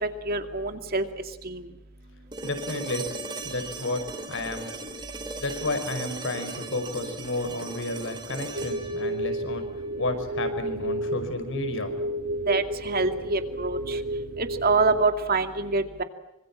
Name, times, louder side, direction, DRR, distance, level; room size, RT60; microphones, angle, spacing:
voice 1, 0.0-1.0 1.4-1.6 12.5-14.0 14.4-16.0, right 3 dB, 45° right, 7 dB, 2.4 m, -26 dB
sound 1, 2.3-10.4 12.5-12.6, right 3 dB, 20° right, 2.5 m, -38 dB
voice 2, 2.4-3.0 3.4-4.7 5.4-9.7 10.0-12.4, left 2 dB, 60° left, 8 dB, 5.2 m, -32 dB
sound 2, 8.5-15.0, right 1 dB, 75° right, 2.1 m, -31 dB
26.5 x 25.5 x 7.5 m, 0.90 s
head